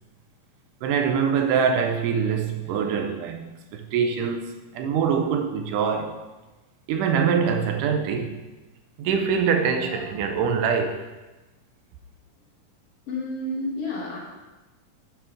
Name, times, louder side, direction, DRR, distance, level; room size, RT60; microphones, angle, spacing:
voice 1, 0.8-6.2 6.9-8.4 9.0-11.1, right 6 dB, 90° right, 2.3 m, -24 dB
voice 2, 9.8-10.3 13.1-14.2, left 1 dB, 50° left, 2.6 m, -31 dB
9.8 x 4.5 x 5.1 m
omnidirectional pair, 3.6 m